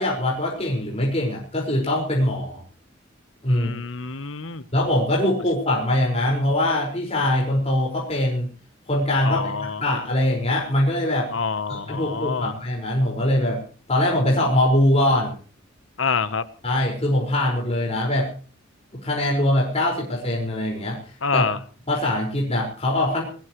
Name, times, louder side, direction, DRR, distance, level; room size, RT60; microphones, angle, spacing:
voice 1, 0.0-2.6 3.4-3.7 4.7-8.5 8.9-11.3 11.7-13.6 13.9-15.3 16.6-18.3 18.9-21.4 21.9-23.3, left 1 dB, 30° left, -2 dB, 5.4 m, -22 dB
voice 2, 3.5-4.6 9.2-9.8 11.3-12.5 16.0-16.4 21.2-21.6, left 5 dB, 70° left, 13 dB, 1.1 m, -26 dB
20.0 x 20.0 x 3.2 m, 0.40 s
head